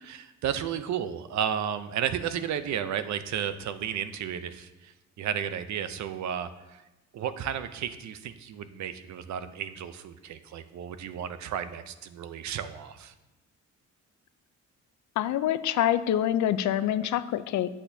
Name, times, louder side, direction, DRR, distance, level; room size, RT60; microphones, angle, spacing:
voice 1, 0.0-6.8 7.1-13.1, right 9 dB, 65° right, 12 dB, 0.6 m, -33 dB
voice 2, 15.2-17.7, left 11 dB, 70° left, 13 dB, 0.5 m, -26 dB
8.4 x 8.2 x 2.7 m, 1.0 s
cardioid pair, 90°, 30 cm